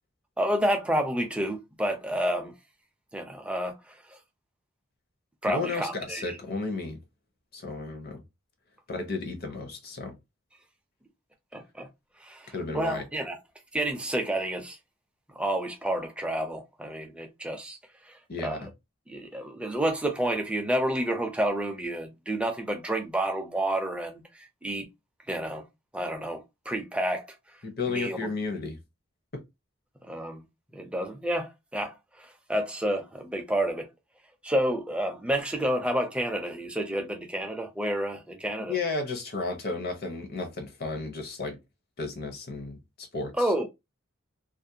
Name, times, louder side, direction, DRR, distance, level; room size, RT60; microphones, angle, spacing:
voice 1, 0.4-2.6 3.1-4.2 5.4-6.4 11.5-11.9 12.2-13.4 13.7-14.8 15.3-17.8 18.0-18.6 19.1-24.9 25.3-25.7 25.9-27.2 27.9-28.3 30.0-30.4 30.7-33.9 34.4-38.7 43.4-43.7, right 1 dB, 5° right, 0.4 m, -30 dB
voice 2, 5.5-7.0 7.5-8.2 8.9-10.2 12.5-13.0 18.3-18.7 27.6-28.8 38.7-41.6 42.0-43.5, left 3 dB, 50° left, 0.7 m, -33 dB
2.4 x 2.1 x 2.7 m
head